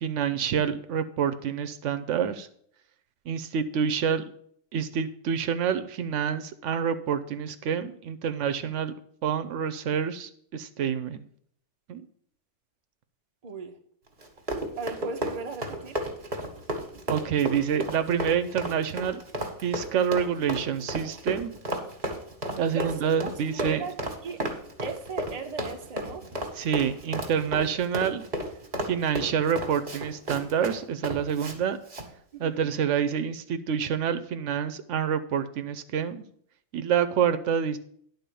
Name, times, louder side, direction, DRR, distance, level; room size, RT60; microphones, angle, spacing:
voice 1, 0.0-2.5 3.3-4.2 4.7-8.9 9.2-11.3 11.9-12.0 17.1-19.2 19.6-21.5 22.6-23.8 26.5-28.2 28.8-31.8 32.4-36.2 36.7-37.8, right 8 dB, 80° right, 0.9 m, -27 dB
voice 2, 13.4-13.8 14.8-16.0 22.7-24.4 24.8-26.3 32.3-32.6, right 5 dB, 35° right, 0.9 m, -37 dB
Run, 14.2-31.6 31.9-32.1, equal, 50° right, 1.6 m, -33 dB
10.5 x 4.0 x 6.8 m
omnidirectional pair, 1.3 m